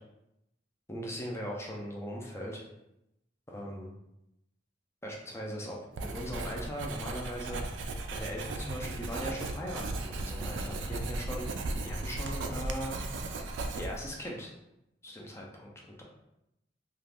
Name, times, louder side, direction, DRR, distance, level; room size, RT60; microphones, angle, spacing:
voice 1, 0.9-2.6 3.5-3.9 5.0-7.6 8.1-13.0 13.8-14.5 15.0-15.7, equal, 15° left, -2 dB, 0.4 m, -39 dB
Writing, 6.0-14.2, right 2 dB, 75° right, 0.3 m, -36 dB
2.4 x 2.4 x 3.4 m, 0.86 s
head